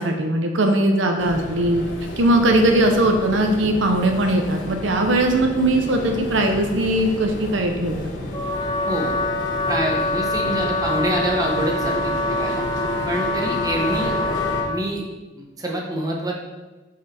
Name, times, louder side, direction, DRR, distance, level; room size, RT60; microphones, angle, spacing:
voice 1, 0.0-1.8 2.2-8.0, right 1 dB, 85° right, 4 dB, 0.8 m, -19 dB
sound 1, 1.2-14.6, left 1 dB, 70° left, 1.0 m, -31 dB
Wind instrument woodwind instrument, 8.3-14.8, left 2 dB, 20° left, 0.5 m, -25 dB
voice 2, 9.7-12.6 13.1-14.1 14.6-15.0 15.4-16.3, right 1 dB, 20° right, 0 dB, 0.9 m, -26 dB
6.2 x 4.2 x 4.3 m, 1.2 s
head